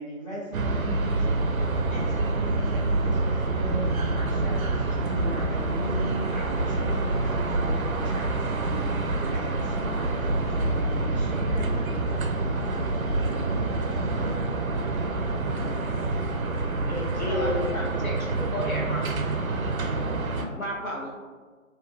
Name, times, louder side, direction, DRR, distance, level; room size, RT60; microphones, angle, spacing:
voice 1, 0.0-11.8, right 1 dB, 25° left, -17 dB, 1.3 m, -39 dB
sound 1, 0.5-20.5, right 2 dB, 75° right, 0.5 m, -27 dB
voice 2, 15.5-18.4, left 1 dB, 50° left, -5 dB, 0.9 m, -34 dB
voice 3, 17.3-18.2 18.5-19.0 20.6-21.2, equal, 80° left, -3 dB, 1.0 m, -33 dB
3.1 x 2.6 x 2.5 m, 1.5 s
figure-of-eight pair, 175°, 42 cm